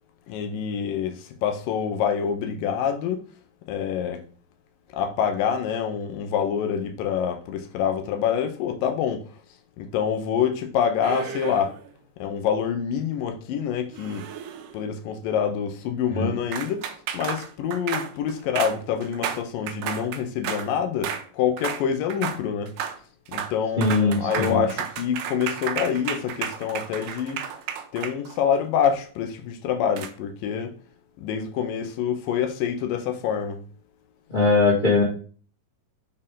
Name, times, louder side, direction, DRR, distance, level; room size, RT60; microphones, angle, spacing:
voice 1, 0.3-3.2 3.7-4.3 4.9-9.4 9.8-11.8 12.2-14.3 14.7-22.8 23.3-27.4 27.9-30.7 31.2-33.6, left 8 dB, 85° left, 2.5 m, -26 dB
sound 1, 11.0-11.9 13.9-14.9 16.5-20.7 21.0-21.3 21.6-21.9 22.1-22.4 22.7-23.0 23.3-23.5 23.8-28.6 30.0-30.1, right 8 dB, 80° right, 2.2 m, -32 dB
voice 2, 23.8-24.6 34.3-35.0, left 3 dB, 20° left, 1.2 m, -20 dB
6.2 x 4.5 x 3.7 m
omnidirectional pair, 3.9 m